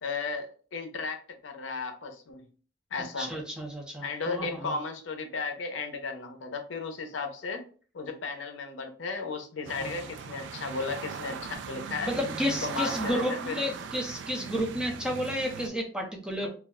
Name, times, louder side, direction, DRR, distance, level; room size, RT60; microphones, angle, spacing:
voice 1, 0.0-2.5 2.9-3.3 4.0-7.6 7.9-12.1 12.5-13.6 16.4-16.5, left 4 dB, 85° left, 5 dB, 0.5 m, -35 dB
voice 2, 3.2-4.7 9.8-9.9 12.0-16.5, equal, 5° right, 0 dB, 0.5 m, -31 dB
sound 1, 9.6-15.7, right 6 dB, 70° right, 0.3 m, -39 dB
2.3 x 2.1 x 3.5 m, 0.40 s
head